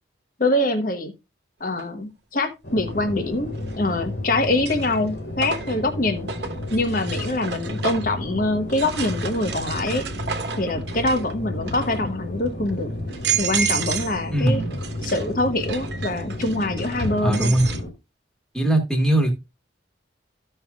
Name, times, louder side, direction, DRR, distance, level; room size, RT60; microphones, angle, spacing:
voice 1, 0.4-1.1 1.6-6.3 6.7-10.0 10.6-12.9 13.4-14.6 15.0-17.5, left 2 dB, 45° left, 1.2 m, -24 dB
sound 1, 1.8-1.9 3.6-4.0 4.4-8.2 8.7-11.3 11.6-12.1 12.7-12.8 13.1-14.2 14.5-17.8, right 7 dB, 60° right, 1.1 m, -31 dB
sound 2, 2.6-17.9, left 1 dB, 70° left, 2.5 m, -32 dB
voice 2, 14.3-14.8 17.2-17.7 18.5-19.3, right 1 dB, 5° left, 1.5 m, -20 dB
14.5 x 5.6 x 2.4 m
head